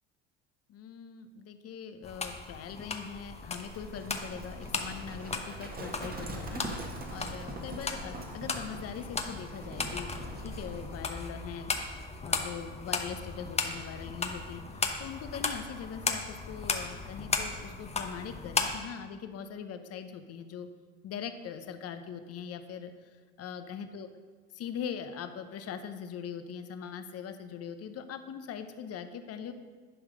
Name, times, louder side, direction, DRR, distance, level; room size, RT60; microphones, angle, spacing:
voice 1, 0.7-6.6 7.1-11.7 12.2-20.7 21.0-22.9 23.4-24.1 24.5-29.5, left 7 dB, 45° left, 9 dB, 0.9 m, -41 dB
sound 1, 2.0-18.8, left 4 dB, 20° left, 0.9 m, -36 dB
Livestock farm animals working animals, 3.6-11.0, right 2 dB, 25° right, 1.5 m, -42 dB
11.0 x 4.7 x 5.1 m, 1.5 s
supercardioid pair, 80°, 33 cm